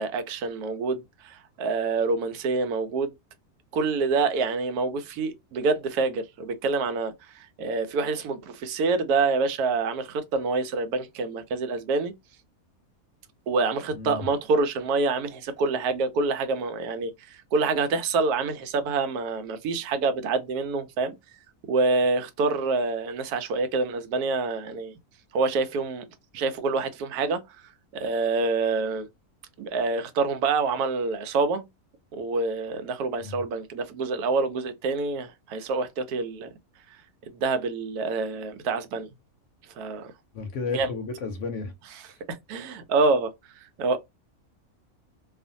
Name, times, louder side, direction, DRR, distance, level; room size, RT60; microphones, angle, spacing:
voice 1, 0.0-3.1 3.7-12.1 13.5-21.1 21.7-24.9 25.3-26.0 26.3-27.4 27.9-29.1 29.6-31.7 32.1-36.5 37.3-39.1 39.8-40.1 40.7-40.9 42.3-43.3 43.8-44.0, right 3 dB, 85° right, 1.1 m, -26 dB
voice 2, 13.9-14.3 33.2-33.4 40.3-41.7 42.1-42.2, left 4 dB, 65° left, 0.8 m, -33 dB
2.4 x 2.4 x 2.5 m
omnidirectional pair, 1.6 m